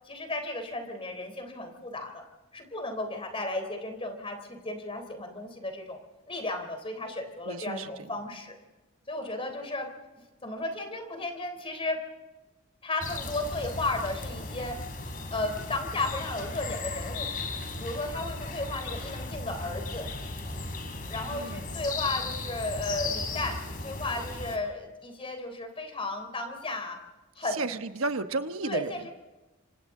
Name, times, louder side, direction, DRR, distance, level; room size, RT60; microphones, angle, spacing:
voice 1, 0.1-2.2 2.5-6.0 6.3-8.6 9.1-9.9 10.4-12.0 12.8-14.8 15.3-17.3 17.8-20.1 21.1-27.0 27.4-27.6 28.6-29.1, left 2 dB, 25° left, 5 dB, 3.5 m, -34 dB
voice 2, 7.5-8.1 21.3-21.8 27.5-29.1, right 3 dB, 85° right, 8 dB, 1.2 m, -33 dB
sound 1, 13.0-24.6, left 3 dB, 45° left, 3.3 m, -36 dB
26.5 x 26.0 x 3.8 m, 1.1 s
head